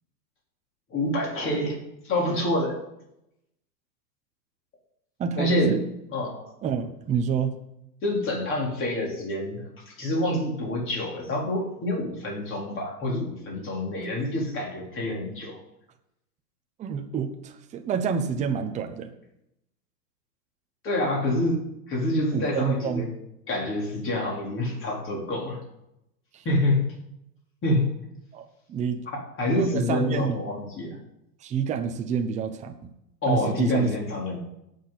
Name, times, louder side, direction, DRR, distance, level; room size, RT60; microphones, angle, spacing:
voice 1, 0.9-2.8 5.4-5.8 6.1-6.5 8.0-15.6 20.8-21.6 21.9-23.1 23.5-25.6 26.4-26.9 27.6-27.9 29.4-31.0 33.2-34.4, left 1 dB, 25° left, -2 dB, 3.9 m, -27 dB
voice 2, 5.2-5.8 6.6-7.6 16.8-19.1 22.3-23.1 26.3-26.4 28.3-29.0 29.5-30.4 31.4-32.9 33.3-33.9, right 6 dB, 15° right, 5 dB, 0.8 m, -28 dB
18.5 x 6.6 x 4.2 m, 0.82 s
hypercardioid pair, 130°, 50 cm